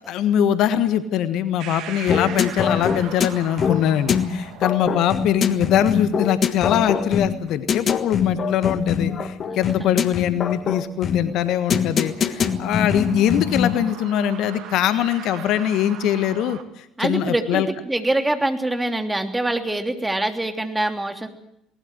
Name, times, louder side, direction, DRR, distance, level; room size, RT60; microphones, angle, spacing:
voice 1, 0.1-17.7, left 10 dB, 60° left, 12 dB, 1.4 m, -22 dB
sound 1, 1.6-16.6, right 10 dB, 60° right, 2.2 m, -42 dB
sound 2, 2.1-13.9, left 7 dB, 45° left, 1.5 m, -24 dB
voice 2, 9.5-9.9 17.0-21.3, right 1 dB, 10° right, 6 dB, 3.1 m, -24 dB
20.5 x 19.5 x 7.8 m, 0.77 s
hypercardioid pair, 60°, 0 cm